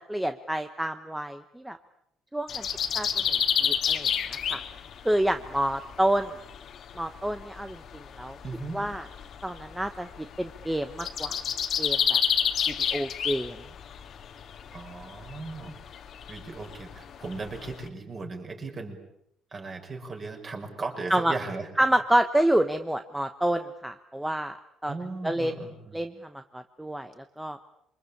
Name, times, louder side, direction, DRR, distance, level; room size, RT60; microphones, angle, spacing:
voice 1, 0.1-1.8 2.3-2.6 2.9-4.6 5.0-6.4 7.0-8.4 8.7-9.1 9.4-10.1 10.4-11.4 11.8-12.2 12.7-13.6 21.1-21.3 21.8-24.6 24.8-24.9 25.2-25.5 25.9-26.1 26.5-27.1 27.4-27.6, right 1 dB, 5° right, 8 dB, 1.0 m, -28 dB
sound 1, 2.5-17.9, left 8 dB, 45° left, 2.1 m, -31 dB
voice 2, 8.4-8.8 14.7-15.7 16.3-19.0 19.5-21.7 24.9-26.0, right 3 dB, 25° right, 3 dB, 6.0 m, -37 dB
27.5 x 25.0 x 8.6 m, 0.77 s
cardioid pair, 160°, 0 cm